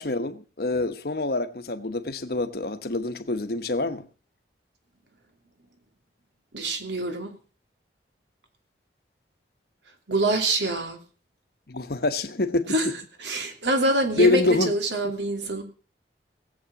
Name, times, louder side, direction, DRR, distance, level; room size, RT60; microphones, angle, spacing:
voice 1, 0.0-4.0 11.7-12.9 14.2-14.7, left 2 dB, 60° left, 1.1 m, -26 dB
voice 2, 6.5-7.3 10.1-11.0 12.7-12.9 13.2-15.6, right 1 dB, 85° right, 2.9 m, -25 dB
18.0 x 8.2 x 6.0 m
head